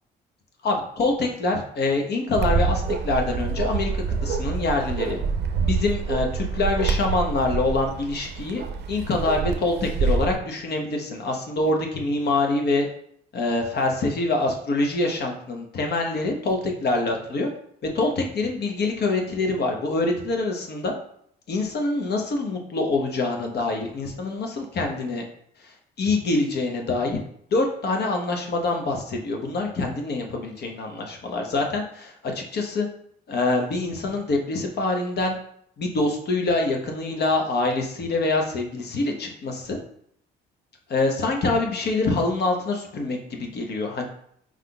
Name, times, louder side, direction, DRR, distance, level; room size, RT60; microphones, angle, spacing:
voice 1, 0.6-3.9 4.2-5.2 5.6-8.6 8.9-12.9 13.3-17.5 17.9-20.9 21.5-25.3 26.0-27.2 27.5-32.9 33.3-35.4 35.8-39.8 40.9-44.0, left 2 dB, 55° left, 2 dB, 1.0 m, -25 dB
Bark, 2.4-10.4, right 5 dB, 55° right, 0.5 m, -26 dB
4.8 x 3.6 x 2.3 m, 0.67 s
supercardioid pair, 60°, 20 cm